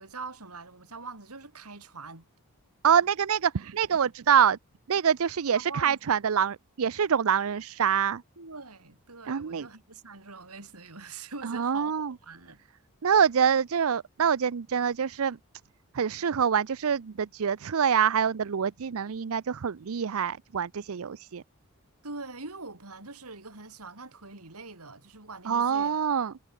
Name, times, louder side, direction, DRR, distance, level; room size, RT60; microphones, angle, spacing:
voice 1, 0.0-2.3 5.5-6.0 8.4-12.6 22.0-26.0, right 3 dB, 85° right, 3.9 m, -43 dB
voice 2, 2.8-4.6 4.9-8.2 9.2-9.7 11.4-12.1 13.0-15.4 15.9-21.4 25.4-26.3, right 7 dB, 70° right, 0.5 m, -25 dB
head